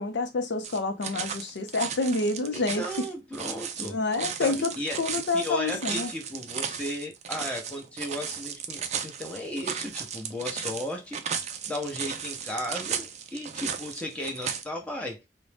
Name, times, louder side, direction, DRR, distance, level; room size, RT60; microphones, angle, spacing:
voice 1, 0.0-3.1 3.9-6.1, left 3 dB, 75° left, 0.5 m, -28 dB
sound 1, 0.6-14.6, right 7 dB, 40° right, 0.4 m, -35 dB
voice 2, 2.5-4.0 4.4-5.1 5.3-11.2 11.7-15.2, left 1 dB, 5° left, 0.8 m, -35 dB
2.6 x 2.1 x 3.2 m
head